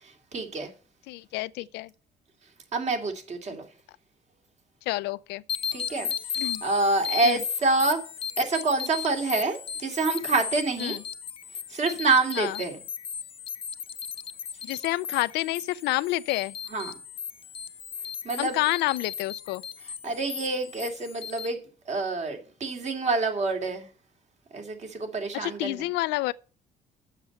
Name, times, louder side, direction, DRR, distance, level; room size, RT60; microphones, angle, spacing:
voice 1, 0.3-0.7 2.7-3.7 5.7-6.1 6.4-8.0 8.4-11.0 11.7-12.8 16.7-16.9 18.2-18.6 20.0-23.9 24.5-25.8, right 3 dB, 40° right, 2.6 m, -27 dB
voice 2, 1.1-1.9 4.9-5.4 6.4-6.6 7.2-7.4 10.8-11.0 12.4-12.6 14.6-16.5 18.4-19.6 25.3-26.3, left 18 dB, 90° left, 0.5 m, -29 dB
sound 1, 5.5-21.5, left 7 dB, 35° left, 0.6 m, -36 dB
7.4 x 6.7 x 8.0 m
cardioid pair, 110°, 17 cm